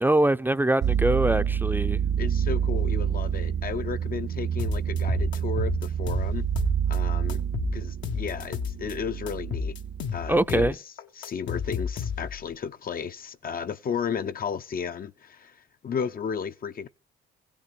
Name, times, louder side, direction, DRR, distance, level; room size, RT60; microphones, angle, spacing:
voice 1, 0.0-2.0 10.3-10.8, right 1 dB, 10° right, 0.6 m, -23 dB
sound 1, 0.8-10.4, right 8 dB, 60° right, 0.8 m, -28 dB
voice 2, 2.2-6.5 6.9-7.4 7.7-9.7 10.1-10.8 11.2-16.9, left 6 dB, 45° left, 0.7 m, -33 dB
sound 2, 4.6-7.0 7.3-8.9 9.3-12.5, left 7 dB, 70° left, 1.2 m, -32 dB
16.0 x 7.1 x 6.8 m
cardioid pair, 90°, 20 cm